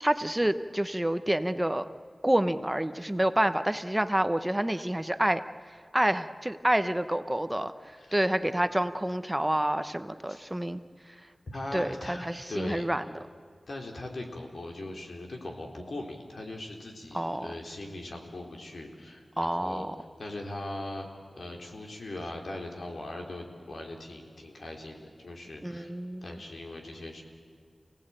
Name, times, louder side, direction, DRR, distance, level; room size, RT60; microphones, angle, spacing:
voice 1, 0.0-1.9 2.2-5.4 5.9-10.8 11.7-13.0 17.1-17.5 19.4-19.9 25.6-26.4, right 1 dB, 15° right, 10 dB, 0.9 m, -28 dB
voice 2, 8.0-8.6 10.3-10.4 11.5-12.9 13.7-19.9 20.2-21.1 21.4-25.9 26.2-27.2, left 1 dB, 80° left, 1 dB, 4.1 m, -40 dB
29.5 x 18.0 x 9.0 m, 2.1 s
wide cardioid pair, 85°, 0 cm